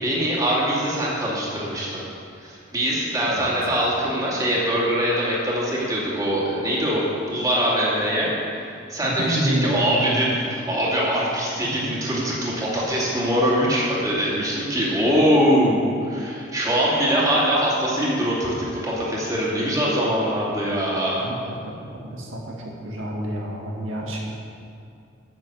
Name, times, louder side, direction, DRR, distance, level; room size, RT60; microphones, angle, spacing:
voice 1, 0.0-2.0 2.4-21.2, equal, 20° right, -6 dB, 2.6 m, -23 dB
voice 2, 9.0-10.3 11.5-11.9 21.2-24.4, right 1 dB, 90° right, -1 dB, 1.8 m, -29 dB
10.5 x 8.3 x 6.4 m, 2.4 s
head